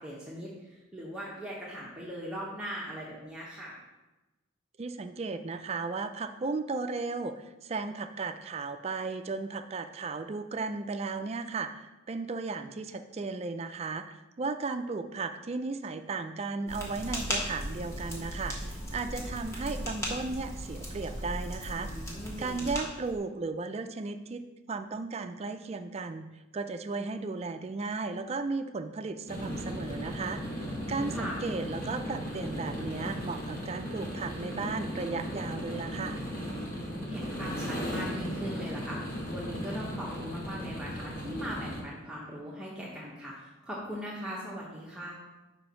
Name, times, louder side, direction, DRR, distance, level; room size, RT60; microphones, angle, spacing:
voice 1, 0.0-3.8 21.8-22.9 30.8-31.5 36.6-45.1, equal, 5° right, -6 dB, 0.8 m, -40 dB
voice 2, 4.8-21.9 22.4-26.3 26.5-30.4 30.9-36.2, right 4 dB, 30° right, 8 dB, 0.3 m, -35 dB
sound 1, 16.7-23.1, equal, 15° left, 1.2 m, -37 dB
sound 2, 29.3-41.8, equal, 45° left, 1.3 m, -36 dB
5.2 x 4.4 x 5.6 m, 1.1 s
head